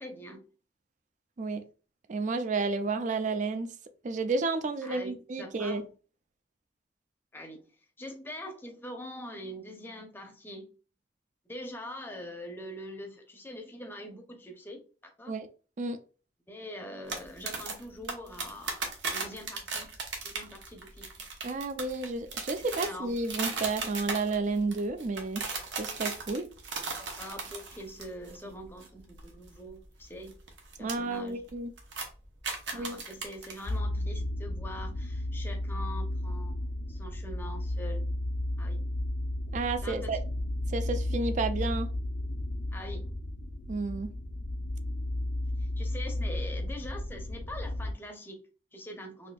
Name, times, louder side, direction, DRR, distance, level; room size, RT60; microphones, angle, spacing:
voice 1, 0.0-0.4 4.8-5.1 5.4-5.9 7.3-7.6 8.0-10.7 11.5-15.3 16.5-19.9 20.2-21.1 22.6-23.2 26.8-30.4 30.8-31.5 32.7-36.6 36.9-38.1 38.6-38.8 39.8-40.2 42.7-43.1 45.6-49.3, equal, 10° left, 0.7 m, -43 dB
voice 2, 2.1-3.7 4.0-5.8 15.3-15.5 15.8-16.0 21.4-25.4 25.8-26.5 30.8-31.7 32.7-33.0 39.5-40.2 40.7-41.9 43.7-44.1, right 3 dB, 45° right, 0.4 m, -31 dB
sound 1, 17.1-28.4 28.6-28.9 29.1-30.9 31.3-31.5 31.8-33.8, right 4 dB, 80° right, 0.9 m, -36 dB
sound 2, 33.7-47.9, left 1 dB, 75° left, 0.5 m, -33 dB
4.1 x 2.7 x 2.3 m
head